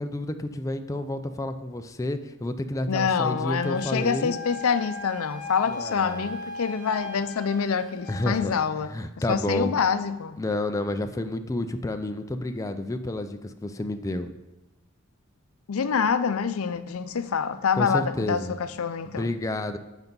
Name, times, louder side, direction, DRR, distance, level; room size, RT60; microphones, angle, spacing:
voice 1, 0.0-4.4 5.7-6.3 8.1-8.5 8.9-9.7 10.4-14.3 17.7-18.6 19.1-19.8, left 1 dB, 15° left, 0.4 m, -30 dB
voice 2, 2.9-8.9 9.3-10.4 15.7-19.3, left 6 dB, 85° left, 0.5 m, -26 dB
Wind instrument woodwind instrument, 3.5-8.5, left 3 dB, 10° right, 2.7 m, -38 dB
8.2 x 5.3 x 5.3 m
head